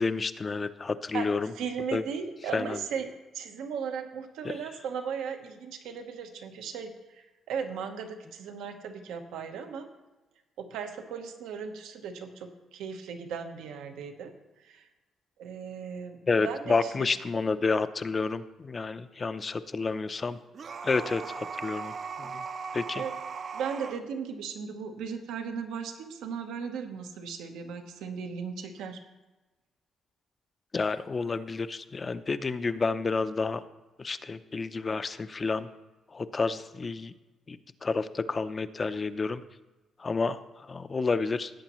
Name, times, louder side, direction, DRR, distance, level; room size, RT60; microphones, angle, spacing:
voice 1, 0.0-1.5 1.9-2.1 2.5-2.8 4.4-4.6 16.3-20.4 20.8-22.4 22.7-23.0 30.7-33.6 34.0-35.7 36.1-37.1 37.5-39.4 40.0-41.5, left 4 dB, 35° left, 12 dB, 0.6 m, -30 dB
voice 2, 1.6-3.1 3.3-9.9 10.6-14.3 14.6-14.9 15.4-17.2 23.0-23.1 23.5-29.0, right 6 dB, 90° right, 6 dB, 1.0 m, -37 dB
sound 1, 20.5-24.0, right 5 dB, 50° right, 0.6 m, -38 dB
17.0 x 8.1 x 3.1 m, 1.1 s
cardioid pair, 90°, 0 cm